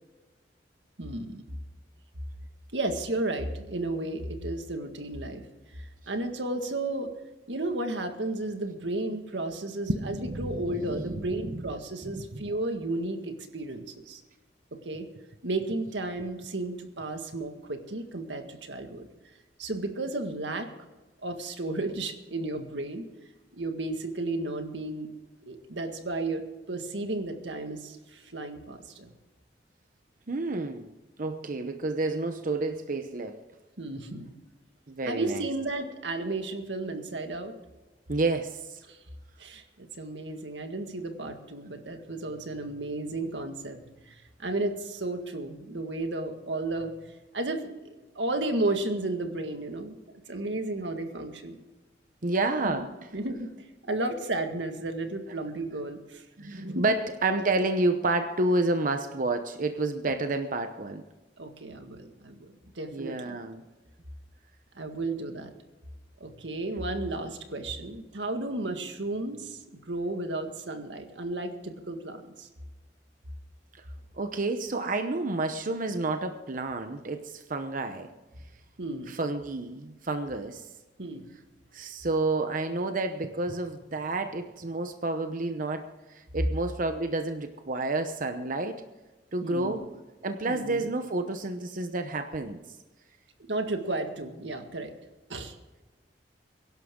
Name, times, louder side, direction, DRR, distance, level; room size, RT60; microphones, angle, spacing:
voice 1, 1.0-1.4 2.7-5.5 5.7-7.1 7.5-14.2 14.7-15.1 15.4-19.1 19.6-20.7 21.2-23.1 23.5-25.1 25.5-29.1 33.8-34.3 35.1-37.6 38.9-39.0 39.4-43.8 44.1-46.9 47.3-50.0 50.3-51.6 52.6-52.9 53.1-53.5 53.8-56.2 56.7-56.9 61.4-62.4 62.8-63.4 64.8-65.5 66.2-69.6 69.9-72.5 78.8-79.1 81.0-81.3 89.4-89.9 90.5-90.9 93.5-94.9 95.3-95.6, right 2 dB, 90° right, 5 dB, 1.9 m, -33 dB
voice 2, 9.9-11.7 12.0-12.5 30.3-30.9 31.2-33.4 34.9-35.5 38.1-38.8 52.2-52.9 56.4-61.0 62.9-63.6 74.2-78.1 79.1-80.7 81.7-88.8 89.3-89.8 90.2-92.6, right 2 dB, 50° right, 7 dB, 0.8 m, -30 dB
23.0 x 11.5 x 3.8 m, 1.2 s
head